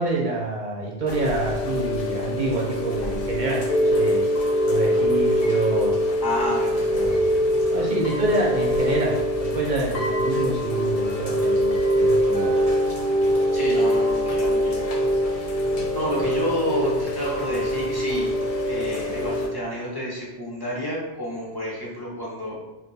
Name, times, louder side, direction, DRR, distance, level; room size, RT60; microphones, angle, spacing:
voice 1, 0.0-4.2 4.7-5.9 6.9-7.4 7.7-12.5 15.7-15.8, right 2 dB, 50° right, -3 dB, 0.7 m, -27 dB
Chime / Rain, 1.1-19.5, equal, 55° left, 0.4 m, -23 dB
voice 2, 6.2-6.9 13.5-14.9 15.3-15.4 15.9-18.3 18.7-22.5, left 1 dB, 25° left, -5 dB, 0.8 m, -29 dB
2.6 x 2.2 x 4.0 m, 1.0 s
omnidirectional pair, 1.2 m